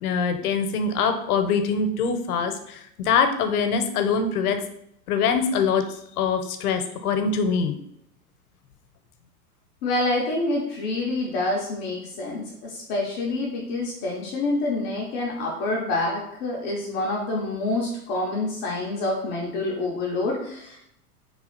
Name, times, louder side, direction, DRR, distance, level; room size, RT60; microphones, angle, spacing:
voice 1, 0.0-4.6 5.1-5.8 6.2-7.8, left 5 dB, 70° left, 7 dB, 0.7 m, -23 dB
voice 2, 9.8-20.8, left 2 dB, 25° left, -3 dB, 0.4 m, -27 dB
3.2 x 2.4 x 4.2 m, 0.75 s
hypercardioid pair, 130°, 46 cm